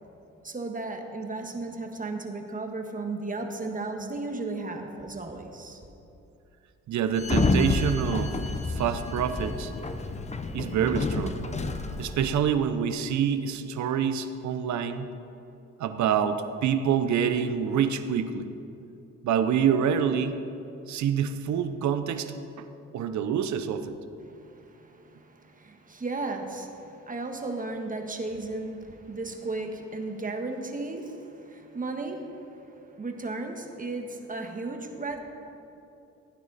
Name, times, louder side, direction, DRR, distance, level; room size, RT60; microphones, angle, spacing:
voice 1, 0.4-5.8 24.3-35.2, right 3 dB, 25° right, 4 dB, 1.5 m, -35 dB
voice 2, 6.9-8.3 8.7-9.7 10.5-11.4 12.0-15.1 15.8-18.5 19.2-20.3 20.9-22.7 22.9-24.0, right 8 dB, 70° right, 9 dB, 0.8 m, -26 dB
Sliding door, 7.2-12.4, left 3 dB, 20° left, 0.8 m, -29 dB
16.0 x 9.4 x 4.2 m, 2.8 s
cardioid pair, 90°, 30 cm